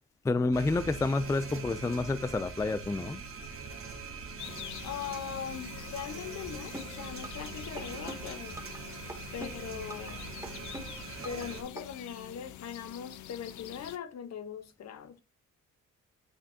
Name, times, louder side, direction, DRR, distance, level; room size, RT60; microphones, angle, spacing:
voice 1, 0.2-3.2, left 3 dB, 10° left, 0.4 m, -29 dB
sound 1, 0.5-11.6, right 5 dB, 45° right, 1.8 m, -43 dB
sound 2, 4.4-14.0, left 13 dB, 75° left, 0.8 m, -46 dB
voice 2, 4.8-8.6 9.3-10.3 11.2-15.2, left 8 dB, 60° left, 1.1 m, -40 dB
sound 3, 6.7-7.5 7.8-8.8 9.1-10.1 10.4-11.5 11.8-11.9, right 1 dB, 10° right, 1.1 m, -43 dB
8.3 x 6.0 x 2.8 m
cardioid pair, 90°, 30 cm